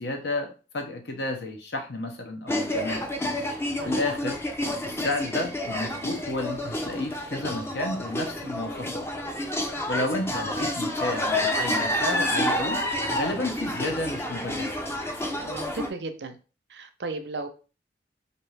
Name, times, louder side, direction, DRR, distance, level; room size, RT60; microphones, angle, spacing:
voice 1, 0.0-3.1 3.8-4.4 4.8-9.1 9.9-12.8 13.1-14.7, left 2 dB, 70° left, 0.9 m, -31 dB
sound 1, 2.5-15.9, left 1 dB, 15° left, 0.5 m, -29 dB
voice 2, 3.8-4.2 15.4-16.4 16.7-17.5, right 3 dB, 70° right, 0.6 m, -35 dB
4.3 x 2.7 x 3.2 m
head